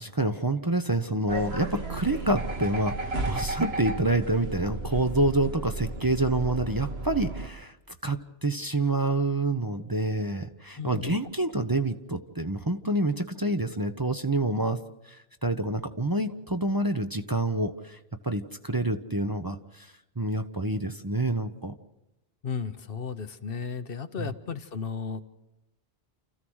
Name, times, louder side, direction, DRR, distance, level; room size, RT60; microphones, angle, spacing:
voice 1, 0.0-7.8 8.0-21.7 24.2-24.3, right 2 dB, 25° right, 6 dB, 0.8 m, -28 dB
sound 1, 1.3-7.5, right 2 dB, 80° right, 2.1 m, -33 dB
voice 2, 10.8-11.2 22.4-25.3, left 6 dB, 65° left, 11 dB, 1.1 m, -34 dB
30.0 x 14.5 x 6.3 m, 0.95 s
omnidirectional pair, 1.0 m